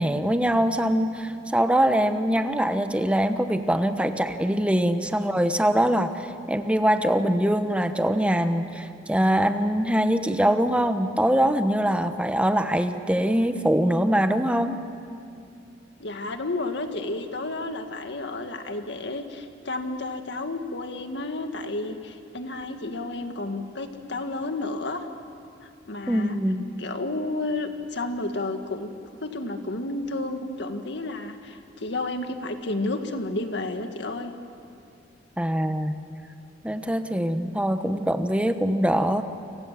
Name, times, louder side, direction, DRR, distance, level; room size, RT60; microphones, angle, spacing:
voice 1, 0.0-14.8 26.1-26.6 35.4-35.9 36.6-39.2, equal, 5° right, 8 dB, 1.1 m, -23 dB
voice 2, 16.0-25.1 25.6-26.4 26.8-28.9 29.2-34.3, left 2 dB, 65° left, 6 dB, 1.9 m, -31 dB
29.5 x 26.0 x 7.5 m, 2.5 s
head